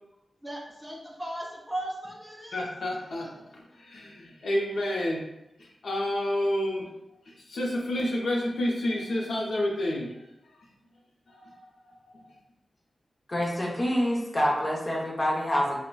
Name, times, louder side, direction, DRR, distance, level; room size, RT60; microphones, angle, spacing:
voice 1, 0.4-2.7, right 1 dB, 5° right, -2 dB, 0.4 m, -37 dB
voice 2, 2.5-5.2 5.6-6.9 7.3-10.1 11.3-11.4, left 1 dB, 80° left, -2 dB, 0.5 m, -29 dB
voice 3, 13.3-15.8, equal, 30° left, -3 dB, 0.7 m, -26 dB
3.8 x 2.1 x 2.2 m, 0.90 s
wide cardioid pair, 110°, 0 cm